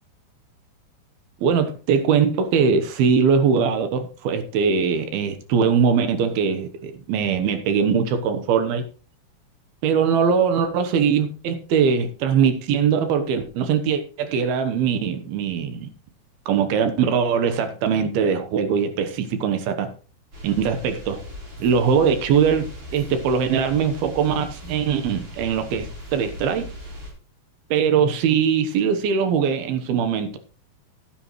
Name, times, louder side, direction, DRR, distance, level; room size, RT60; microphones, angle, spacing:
voice 1, 1.4-8.9 9.8-15.9 16.5-19.9 20.4-21.2 21.6-26.7 27.7-30.4, right 6 dB, 70° right, 8 dB, 2.8 m, -21 dB
sound 1, 20.3-27.1, left 1 dB, 35° right, 4.4 m, -38 dB
15.0 x 9.6 x 3.1 m, 0.37 s
omnidirectional pair, 4.9 m